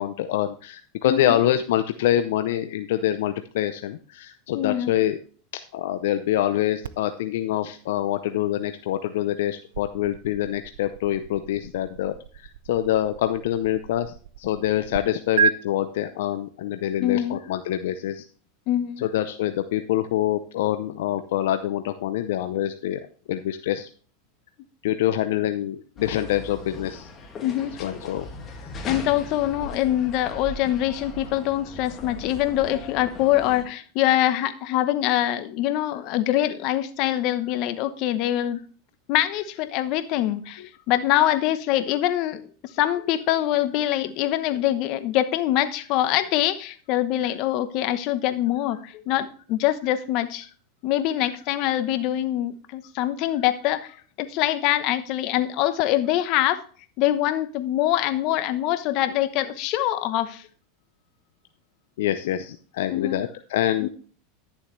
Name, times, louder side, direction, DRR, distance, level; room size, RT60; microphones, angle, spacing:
voice 1, 0.0-5.2 5.7-18.2 19.0-23.0 23.3-23.9 24.8-27.1 27.8-28.3 28.6-28.7 40.6-40.7 62.0-63.9, left 12 dB, 75° left, 9 dB, 0.6 m, -25 dB
voice 2, 1.1-1.4 4.5-4.9 17.0-17.4 18.7-19.0 27.4-27.7 28.9-38.6 39.1-40.6 40.9-42.4 42.8-50.5 50.8-53.9 54.2-56.6 57.0-60.4 62.9-63.2 63.8-63.9, left 13 dB, 55° left, 12 dB, 0.9 m, -24 dB
sound 1, 6.8-15.0 15.4-15.5, right 7 dB, 85° right, 0.5 m, -33 dB
sound 2, 26.0-33.6, left 2 dB, 30° left, 2.1 m, -39 dB
11.0 x 7.2 x 3.2 m, 0.42 s
hypercardioid pair, 115°, 0 cm